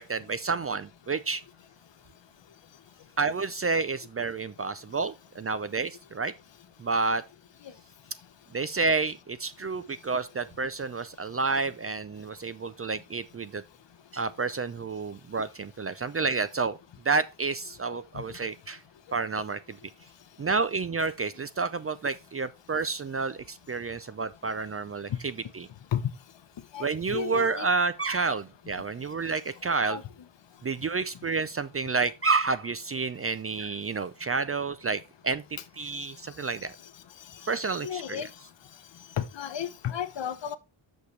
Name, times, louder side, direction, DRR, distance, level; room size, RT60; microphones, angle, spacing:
voice 1, 0.0-1.4 3.2-6.3 6.8-7.2 8.5-13.6 14.1-16.8 17.0-18.8 19.1-19.8 20.4-25.7 26.8-30.0 30.6-36.8 37.4-38.3, right 4 dB, 30° right, 0.4 m, -30 dB
voice 2, 26.7-27.7 29.9-30.0 37.8-38.3 39.2-40.6, left 9 dB, 65° left, 0.9 m, -32 dB
8.3 x 6.5 x 3.2 m
wide cardioid pair, 125°, 48 cm